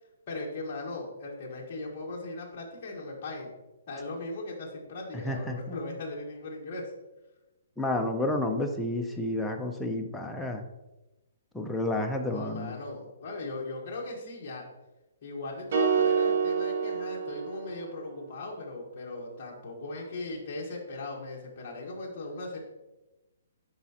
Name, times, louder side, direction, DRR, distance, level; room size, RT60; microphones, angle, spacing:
voice 1, 0.3-3.5 3.9-6.9 12.3-14.6 15.2-22.6, left 2 dB, 30° left, -3 dB, 1.4 m, -38 dB
voice 2, 5.2-5.9 7.8-10.6 11.5-12.8, left 1 dB, ahead, 1 dB, 0.4 m, -30 dB
sound 1, 15.7-18.0, right 6 dB, 45° right, 1.1 m, -27 dB
10.0 x 4.9 x 2.9 m, 1.0 s
hypercardioid pair, 175°, 0 cm